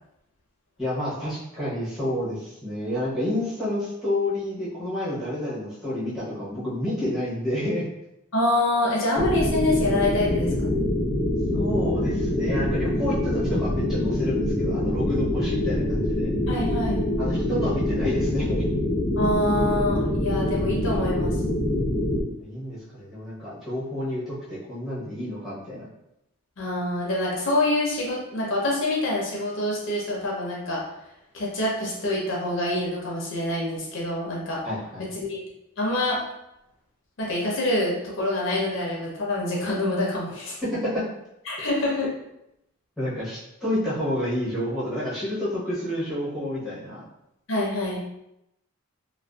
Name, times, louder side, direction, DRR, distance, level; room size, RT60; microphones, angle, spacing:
voice 1, 0.8-7.8 11.5-16.3 17.2-18.7 22.4-25.9 34.6-35.1 40.7-41.0 43.0-47.0, left 1 dB, ahead, -10 dB, 0.8 m, -29 dB
voice 2, 8.3-10.7 16.5-17.0 19.2-21.4 26.6-30.8 31.3-34.6 35.1-35.4 35.8-36.2 37.2-40.6 41.5-42.1 47.5-48.0, left 1 dB, 65° left, -4 dB, 0.6 m, -26 dB
sound 1, 9.1-22.2, left 1 dB, 20° left, 0.3 m, -25 dB
2.5 x 2.2 x 2.2 m, 0.85 s
head